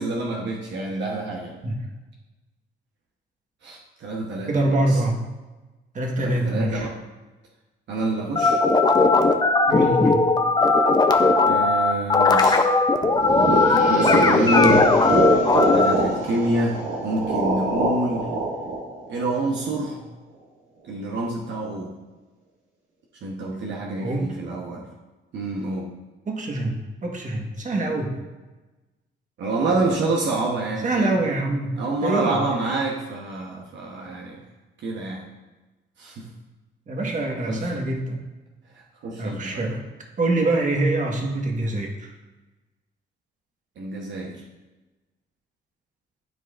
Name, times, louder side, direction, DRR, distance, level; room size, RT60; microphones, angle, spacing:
voice 1, 0.0-1.5 3.6-5.0 6.2-6.9 7.9-8.6 11.5-12.6 13.2-14.9 15.6-16.8 17.0-18.3 19.1-20.0 20.8-21.9 23.2-24.9 25.3-25.9 29.4-31.2 31.8-34.4 34.8-35.2 36.0-36.3 37.0-37.1 37.5-37.9 39.0-39.6 43.8-44.4, right 2 dB, 65° right, -2 dB, 1.1 m, -27 dB
voice 2, 4.5-5.2 5.9-6.9 9.7-10.2 24.0-24.3 26.3-28.2 30.8-31.8 32.0-32.7 36.9-38.2 39.2-39.8 40.2-42.1, right 2 dB, 40° right, 1 dB, 1.5 m, -25 dB
sound 1, 8.4-15.9, left 3 dB, 20° left, 0.6 m, -18 dB
sound 2, 13.0-19.9, right 2 dB, 90° right, 1.8 m, -24 dB
12.0 x 4.8 x 2.5 m, 1.2 s
cardioid pair, 90°, 20 cm